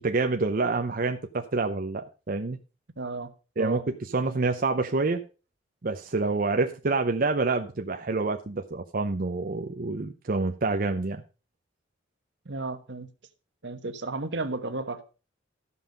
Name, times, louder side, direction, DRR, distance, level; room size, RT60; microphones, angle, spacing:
voice 1, 0.0-2.6 3.6-3.8 4.1-5.2 5.8-11.2, right 3 dB, 50° right, 0.7 m, -27 dB
voice 2, 3.0-3.3 3.6-3.9 12.4-13.1 13.6-15.0, right 3 dB, 70° right, 1.2 m, -33 dB
14.0 x 5.6 x 5.3 m
head